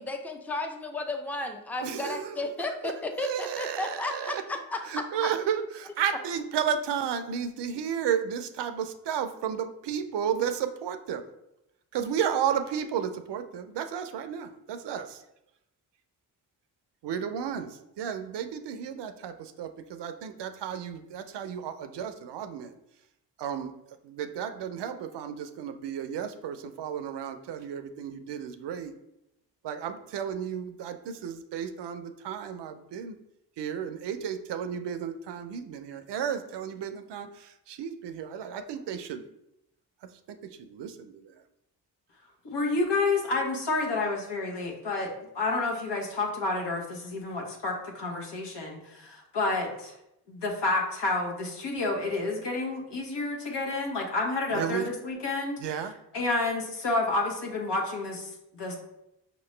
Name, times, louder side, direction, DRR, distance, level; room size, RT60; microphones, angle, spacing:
voice 1, 0.0-5.3, left 2 dB, 5° left, 4 dB, 0.6 m, -33 dB
voice 2, 1.8-2.4 3.2-4.4 4.9-11.3 11.9-15.2 17.0-22.7 23.4-23.7 24.0-28.9 29.6-33.2 33.6-39.2 40.3-40.4 40.7-41.2 54.5-54.9 55.6-55.9, right 8 dB, 65° right, 9 dB, 0.5 m, -33 dB
voice 3, 42.5-49.9 50.3-58.7, left 3 dB, 65° left, 0 dB, 1.3 m, -30 dB
5.4 x 2.9 x 3.2 m, 0.85 s
supercardioid pair, 45°, 45 cm